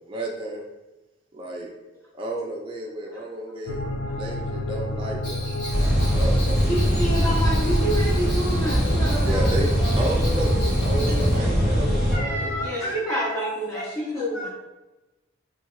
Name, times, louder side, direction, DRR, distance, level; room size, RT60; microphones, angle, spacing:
voice 1, 0.1-0.6 1.4-1.7 2.2-3.8 4.1-5.4 5.8-6.9 9.2-10.5 10.8-12.5 12.8-13.0, right 1 dB, 30° right, -2 dB, 0.4 m, -32 dB
sound 1, 3.7-12.7, left 2 dB, 85° left, 0.3 m, -30 dB
Bell, 5.2-11.4, left 1 dB, 70° left, 0.9 m, -39 dB
sound 2, 5.7-12.2, equal, ahead, 1.1 m, -22 dB
voice 2, 6.7-9.5 9.8-10.1 12.6-14.5, right 1 dB, 15° left, -8 dB, 0.8 m, -28 dB
voice 3, 12.1-13.3 13.7-14.5, equal, 45° left, -7 dB, 1.3 m, -33 dB
3.5 x 3.2 x 2.3 m, 1.1 s
head